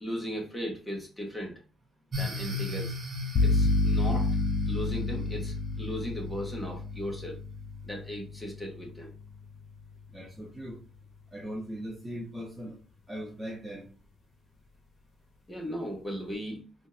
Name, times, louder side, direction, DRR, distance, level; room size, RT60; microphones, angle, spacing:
voice 1, 0.0-1.5 2.2-3.0 3.4-4.3 4.7-7.4 7.8-9.1 15.5-16.6, equal, 10° left, -1 dB, 1.1 m, -37 dB
sound 1, 2.1-6.7, left 2 dB, 35° right, 1.4 m, -38 dB
sound 2, 3.3-11.1, left 3 dB, 60° left, 0.4 m, -30 dB
voice 2, 10.1-10.8 11.3-12.8 13.1-13.9, equal, 15° right, -1 dB, 0.7 m, -39 dB
3.7 x 2.6 x 2.5 m, 0.36 s
cardioid pair, 90°, 0 cm